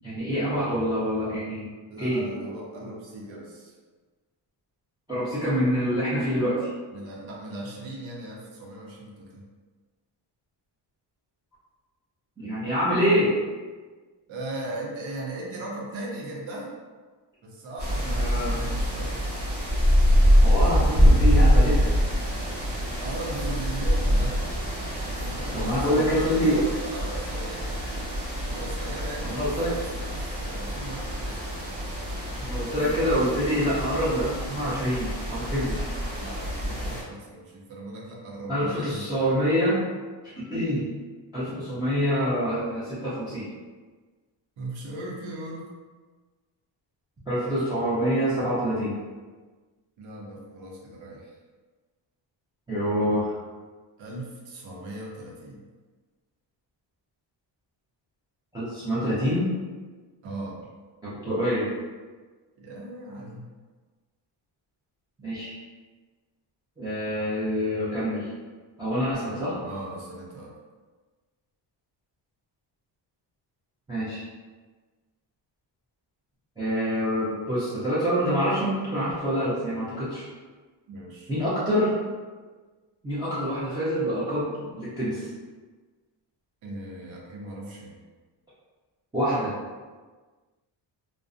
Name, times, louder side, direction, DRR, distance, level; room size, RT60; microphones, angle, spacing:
voice 1, 0.0-1.7 2.0-2.2 5.1-6.7 12.4-13.3 18.0-18.6 20.4-21.9 25.5-26.6 29.2-29.8 32.4-35.9 38.5-39.8 40.4-40.9 41.3-43.5 47.3-48.9 52.7-53.3 58.5-59.5 61.0-61.7 65.2-65.6 66.8-68.3 68.8-69.5 73.9-74.3 76.6-80.3 81.3-82.0 83.0-85.3 89.1-89.5, equal, 10° right, -12 dB, 0.4 m, -26 dB
voice 2, 1.9-3.7 6.9-9.5 14.3-16.7 17.4-19.2 23.0-24.4 25.2-27.7 28.4-29.7 30.0-31.4 35.7-35.9 36.2-39.3 44.6-45.7 50.0-51.3 54.0-55.6 60.2-60.6 62.6-63.4 69.2-70.5 80.9-81.3 86.6-88.0, right 1 dB, 85° right, -2 dB, 0.7 m, -38 dB
sound 1, 17.8-37.0, equal, 35° right, 0.8 m, -25 dB
2.4 x 2.1 x 2.4 m, 1.4 s
cardioid pair, 170°, 46 cm